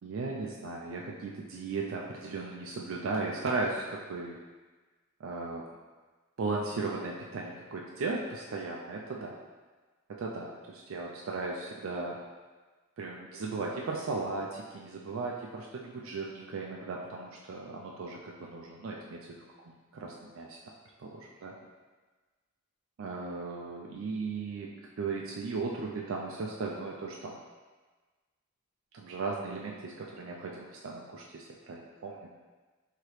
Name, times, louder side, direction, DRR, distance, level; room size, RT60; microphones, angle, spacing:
voice 1, 0.0-4.4 5.2-5.6 6.4-9.4 10.1-12.2 13.0-20.6 21.0-21.5 23.0-27.4 28.9-32.3, right 3 dB, 65° right, -2 dB, 0.4 m, -36 dB
4.7 x 2.9 x 3.1 m, 1.3 s
head